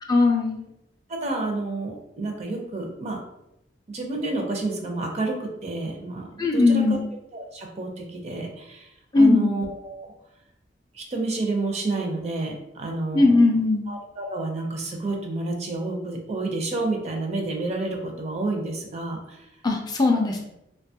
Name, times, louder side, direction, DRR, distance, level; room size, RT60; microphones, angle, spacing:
voice 1, 0.1-0.6 6.4-7.0 9.1-9.5 13.1-13.9 19.6-20.4, left 3 dB, 20° left, 1 dB, 0.3 m, -19 dB
voice 2, 1.1-3.2 3.9-7.0 7.3-8.9 9.1-10.1 10.9-13.6 13.9-19.5, right 2 dB, 40° right, 2 dB, 0.5 m, -29 dB
2.8 x 2.2 x 2.7 m, 0.85 s
head